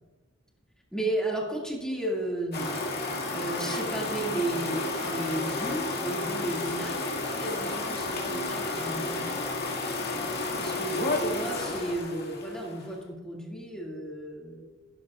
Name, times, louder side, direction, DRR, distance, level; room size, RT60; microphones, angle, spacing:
voice 1, 0.9-2.8 3.3-9.3 10.6-14.6, right 1 dB, 5° left, -3 dB, 2.2 m, -34 dB
sound 1, 2.5-13.0, left 2 dB, 55° left, 2.1 m, -31 dB
16.5 x 12.0 x 2.4 m, 1.2 s
head